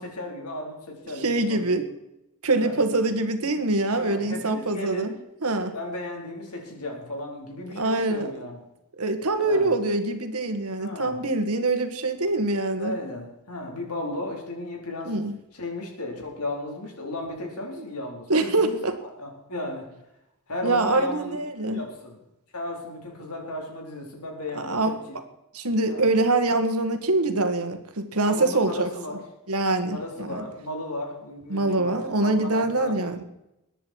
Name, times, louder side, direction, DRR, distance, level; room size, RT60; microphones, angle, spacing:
voice 1, 0.0-1.8 2.6-2.8 3.9-5.1 5.7-8.6 9.4-9.7 10.8-11.2 12.8-15.1 15.5-18.8 19.2-19.9 20.5-22.2 22.5-25.2 25.9-26.1 28.2-29.2 29.9-32.9, left 1 dB, 80° left, 0 dB, 4.3 m, -35 dB
voice 2, 1.2-1.8 2.4-5.1 5.4-5.7 7.7-8.3 9.0-12.9 15.0-15.3 18.3-18.9 20.6-21.8 24.5-24.9 25.5-28.9 29.5-30.4 31.5-33.2, right 2 dB, 75° right, 8 dB, 1.7 m, -24 dB
21.5 x 10.0 x 4.7 m, 0.89 s
head